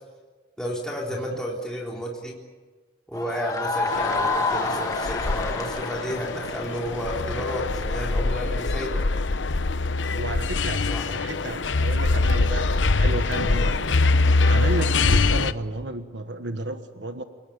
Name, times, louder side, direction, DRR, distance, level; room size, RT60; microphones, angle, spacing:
voice 1, 0.6-2.3 3.1-9.0 10.9-11.1, equal, 5° left, -3 dB, 3.7 m, -31 dB
sound 1, 3.1-7.9, left 3 dB, 20° left, 1.9 m, -29 dB
sound 2, 3.9-15.5, left 3 dB, 90° left, 0.8 m, -24 dB
voice 2, 10.2-12.7 13.0-14.0 14.5-17.2, right 2 dB, 80° right, 8 dB, 1.4 m, -32 dB
30.0 x 18.5 x 8.7 m, 1.4 s
head